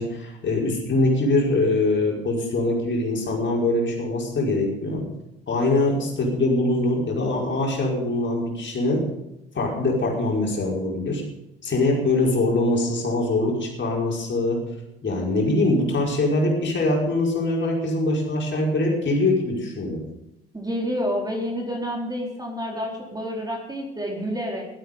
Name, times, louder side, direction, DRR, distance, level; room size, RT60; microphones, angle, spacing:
voice 1, 0.0-5.1 5.5-9.1 9.5-11.2 11.6-14.6 15.0-20.0, left 2 dB, 35° left, -1 dB, 5.1 m, -23 dB
voice 2, 20.5-24.6, equal, 10° right, 0 dB, 4.3 m, -29 dB
17.0 x 12.5 x 5.4 m, 0.89 s
figure-of-eight pair, 50°, 32 cm